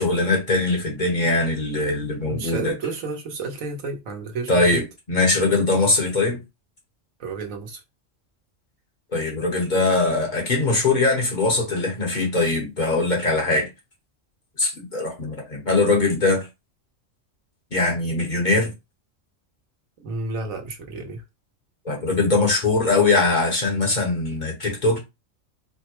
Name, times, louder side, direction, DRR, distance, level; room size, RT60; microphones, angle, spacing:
voice 1, 0.0-2.7 4.5-4.8 5.1-6.4 9.1-13.7 14.6-16.5 17.7-18.7 21.8-25.0, left 3 dB, 40° left, 1.1 m, -21 dB
voice 2, 2.3-4.8 7.2-7.8 20.0-21.2, right 3 dB, 90° right, 1.3 m, -31 dB
4.5 x 2.1 x 2.9 m
omnidirectional pair, 1.4 m